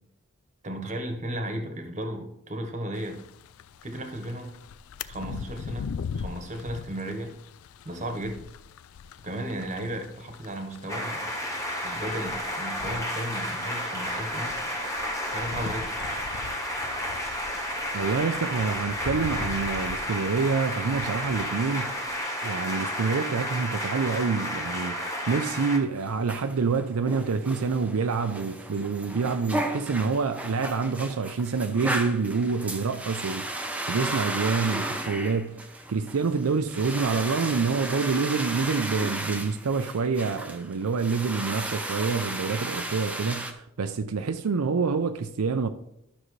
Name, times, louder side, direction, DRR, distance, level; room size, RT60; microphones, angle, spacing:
voice 1, 0.6-3.2 3.8-4.5 5.0-5.9 6.1-7.3 7.8-8.4 9.2-11.2 11.8-14.5 15.3-15.9, right 1 dB, 35° right, 1.2 m, -34 dB
sound 1, 2.9-22.2, left 6 dB, 70° left, 0.3 m, -42 dB
sound 2, 10.9-25.8, equal, 15° left, 1.2 m, -32 dB
voice 2, 17.9-21.9 22.4-25.0 25.3-35.6 35.9-45.7, right 5 dB, 85° right, 0.5 m, -27 dB
sound 3, 25.9-43.5, right 1 dB, 5° right, 0.6 m, -34 dB
12.5 x 6.3 x 3.2 m
head